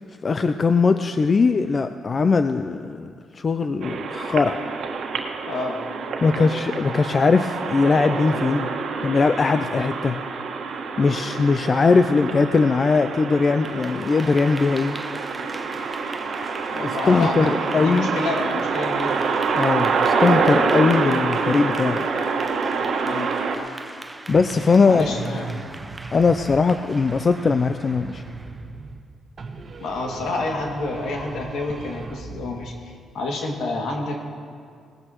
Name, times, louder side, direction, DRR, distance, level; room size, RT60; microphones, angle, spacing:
voice 1, 0.2-4.6 6.2-8.7 9.0-10.2 11.0-15.0 17.1-18.1 19.5-22.1 24.3-25.1 26.1-28.2, left 4 dB, 35° left, 9 dB, 0.4 m, -20 dB
sound 1, 3.8-23.6, right 5 dB, 65° right, 1.5 m, -26 dB
voice 2, 5.4-5.8 6.2-6.5 16.6-19.2 23.1-23.3 24.8-25.7 29.8-34.3, left 2 dB, 75° left, 0 dB, 2.2 m, -29 dB
Clapping / Applause, 13.4-28.7, right 2 dB, 15° right, 0.7 m, -40 dB
sound 2, 24.3-26.8 27.1-29.1 29.4-32.8, right 3 dB, 45° right, 1.1 m, -38 dB
19.0 x 15.5 x 3.0 m, 2.3 s
cardioid pair, 90°, 0 cm